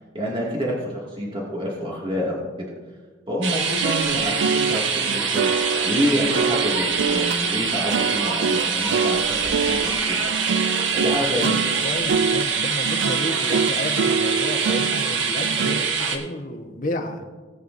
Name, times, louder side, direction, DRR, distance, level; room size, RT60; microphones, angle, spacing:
voice 1, 0.1-2.7 3.3-5.5 5.8-10.2 10.9-11.6, equal, 30° right, -4 dB, 2.4 m, -27 dB
sound 1, 3.4-16.2, right 5 dB, 80° right, 1.5 m, -24 dB
sound 2, 3.8-15.9, right 5 dB, 65° right, 0.3 m, -26 dB
voice 2, 11.4-17.3, left 1 dB, 45° left, 3 dB, 1.3 m, -31 dB
18.5 x 8.9 x 2.7 m, 1.4 s
head